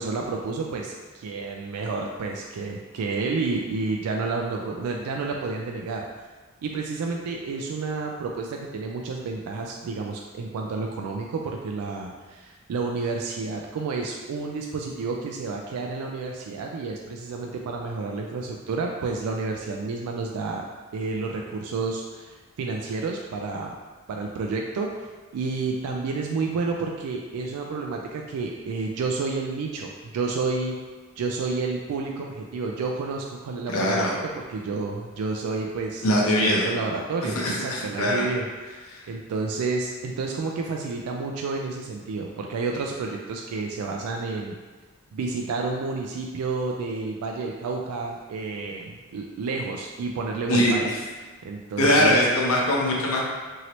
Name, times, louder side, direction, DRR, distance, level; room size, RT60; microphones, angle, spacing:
voice 1, 0.0-6.1 6.6-20.7 20.9-23.7 24.1-30.7 31.2-34.1 34.4-36.0 36.4-38.8 39.1-44.6 45.1-50.9 51.4-52.2, right 4 dB, 85° right, 1 dB, 0.3 m, -30 dB
voice 2, 33.7-34.2 36.0-36.7 37.2-38.3 38.9-39.1 50.5-51.0 51.8-53.2, left 1 dB, 70° left, -3 dB, 0.7 m, -22 dB
2.9 x 2.7 x 3.0 m, 1.3 s
head